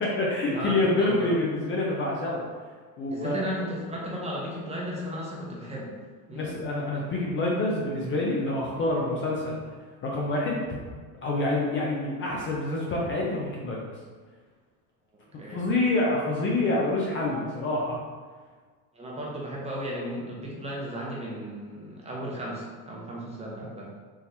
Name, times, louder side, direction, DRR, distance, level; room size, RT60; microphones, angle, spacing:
voice 1, 0.0-2.4 3.0-3.4 6.3-9.6 10.0-10.6 11.2-13.8 15.5-18.0, left 2 dB, 30° left, -3 dB, 0.5 m, -27 dB
voice 2, 0.5-1.3 3.1-5.9 6.3-6.5 15.4-15.6 18.9-23.9, equal, 15° right, -4 dB, 0.7 m, -35 dB
3.7 x 2.9 x 2.7 m, 1.5 s
supercardioid pair, 125°, 42 cm